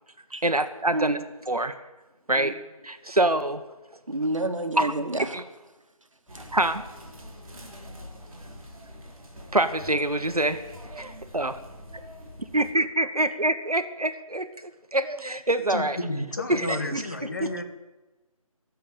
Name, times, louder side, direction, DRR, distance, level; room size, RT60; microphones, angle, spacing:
voice 1, 0.4-1.2 1.5-1.8 2.3-2.6 2.8-3.6 4.8-4.9 5.3-5.4 6.5-6.8 9.5-10.6 11.0-11.6 12.5-14.5 14.9-16.0 16.5-17.5, right 1 dB, 80° right, 1.4 m, -25 dB
voice 2, 4.1-5.4, right 2 dB, 60° right, 1.8 m, -28 dB
sound 1, 6.3-12.7, equal, ahead, 0.7 m, -44 dB
voice 3, 15.7-17.6, left 2 dB, 30° left, 1.5 m, -31 dB
21.0 x 7.6 x 8.6 m
figure-of-eight pair, 165°, 19 cm